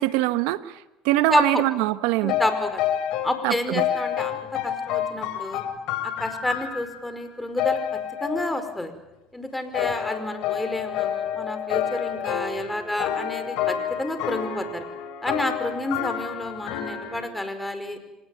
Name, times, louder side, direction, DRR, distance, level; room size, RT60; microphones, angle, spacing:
voice 1, 0.0-2.4 3.4-3.8, right 16 dB, 80° right, 14 dB, 1.3 m, -23 dB
voice 2, 1.3-1.6 2.2-2.8 3.2-5.6 6.0-8.9 9.3-14.8 15.2-18.0, left 1 dB, 10° left, 9 dB, 5.1 m, -29 dB
sound 1, 2.3-3.5 3.8-7.2 7.6-8.7 9.7-17.3, left 10 dB, 70° left, 3.8 m, -29 dB
26.0 x 19.5 x 9.4 m, 0.98 s
supercardioid pair, 90°, 0 cm